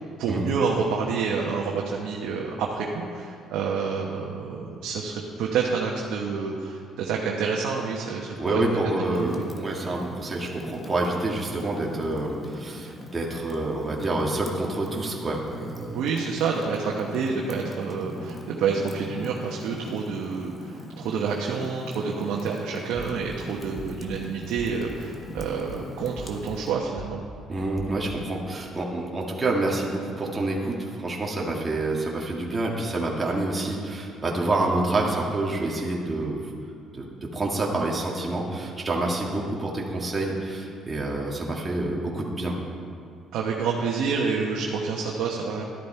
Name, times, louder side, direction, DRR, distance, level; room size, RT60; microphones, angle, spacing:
voice 1, 0.2-8.6 9.0-9.4 15.9-27.2 43.3-45.6, right 5 dB, 80° right, -2 dB, 1.1 m, -28 dB
voice 2, 8.4-16.0 27.5-36.5 36.9-37.1 37.3-42.6, right 2 dB, 25° right, -2 dB, 2.0 m, -27 dB
Fire, 9.1-26.7, left 1 dB, 25° left, 1.3 m, -41 dB
sound 1, 22.9-23.4 23.8-24.2 24.6-25.0 25.4-25.8 26.2-26.6 27.0-27.4 27.8-28.2, left 1 dB, ahead, 1.2 m, -41 dB
12.0 x 10.5 x 4.5 m, 2.5 s
cardioid pair, 100°, 0 cm